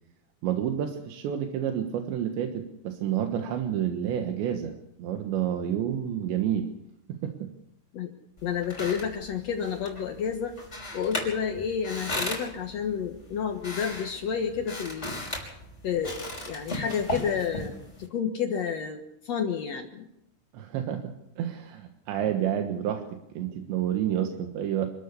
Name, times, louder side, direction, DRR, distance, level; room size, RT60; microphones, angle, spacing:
voice 1, 0.4-6.7 7.2-7.5 20.5-21.1 21.4-23.0 23.3-24.9, right 10 dB, 85° right, 5 dB, 3.7 m, -29 dB
voice 2, 8.4-10.6 10.9-15.2 15.8-17.7 18.0-20.1, left 7 dB, 65° left, 4 dB, 1.6 m, -30 dB
sound 1, 8.4-18.1, left 1 dB, 15° left, 5.5 m, -37 dB
26.5 x 13.5 x 8.3 m, 0.83 s
omnidirectional pair, 5.0 m